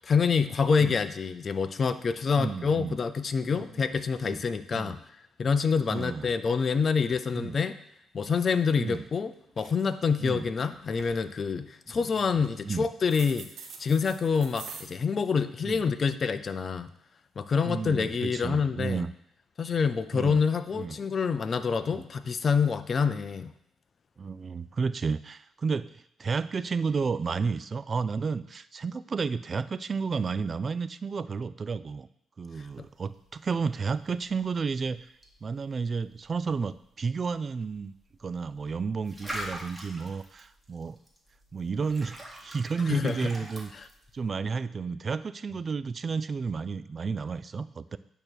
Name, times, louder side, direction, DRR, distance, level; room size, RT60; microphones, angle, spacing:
voice 1, 0.0-5.0 5.4-7.7 8.1-13.5 13.8-16.9 17.4-19.0 19.6-23.5 32.8-32.9 42.9-43.2, left 5 dB, 45° left, 12 dB, 0.5 m, -27 dB
voice 2, 2.4-3.0 3.5-3.6 4.2-4.4 4.7-5.0 5.9-6.3 7.4-7.6 8.8-9.1 10.2-10.5 11.9-12.9 15.6-15.8 17.7-19.1 20.1-20.4 20.7-21.0 21.9-22.0 24.2-32.1 32.4-35.1 35.4-37.9 38.2-41.0 41.5-43.7 44.1-48.0, right 5 dB, 40° right, 15 dB, 0.3 m, -32 dB
sound 1, 8.9-9.2 9.5-10.3 10.7-11.2 12.0-12.6 13.1-14.8, right 5 dB, 75° right, 1.2 m, -45 dB
sound 2, 32.6-44.3, right 1 dB, 10° right, 1.6 m, -45 dB
8.8 x 3.0 x 6.3 m, 0.73 s
cardioid pair, 85°, 0 cm